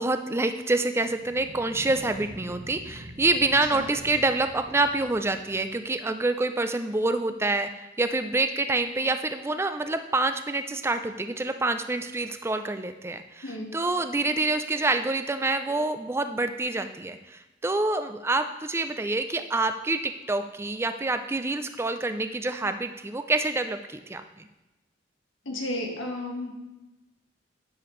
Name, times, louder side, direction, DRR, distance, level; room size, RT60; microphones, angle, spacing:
voice 1, 0.0-24.5, right 2 dB, 15° right, 8 dB, 0.4 m, -27 dB
sound 1, 1.0-5.9, right 1 dB, 75° right, 1.1 m, -45 dB
voice 2, 25.4-26.6, left 1 dB, 90° left, 1 dB, 1.5 m, -33 dB
9.7 x 7.0 x 3.1 m, 1.1 s
head